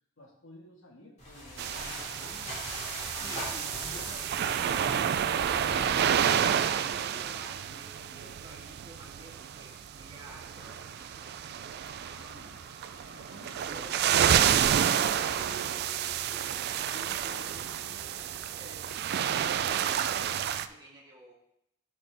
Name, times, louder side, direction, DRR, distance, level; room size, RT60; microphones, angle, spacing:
voice 1, 0.2-2.6 2.9-5.9 6.3-7.1 7.5-8.4 11.9-12.7 13.1-14.1, left 1 dB, 75° left, 0 dB, 1.6 m, -54 dB
sound 1, 1.2-6.7, equal, 35° left, 2.5 m, -41 dB
sound 2, 1.6-20.7, right 9 dB, 55° right, 0.3 m, -30 dB
voice 2, 3.1-3.8 6.4-11.3 11.8-12.5 13.2-14.1 16.8-21.3, equal, 20° right, -5 dB, 2.1 m, -51 dB
sound 3, 7.5-19.2, right 1 dB, 60° left, 1.8 m, -53 dB
11.5 x 4.2 x 3.4 m, 0.78 s
head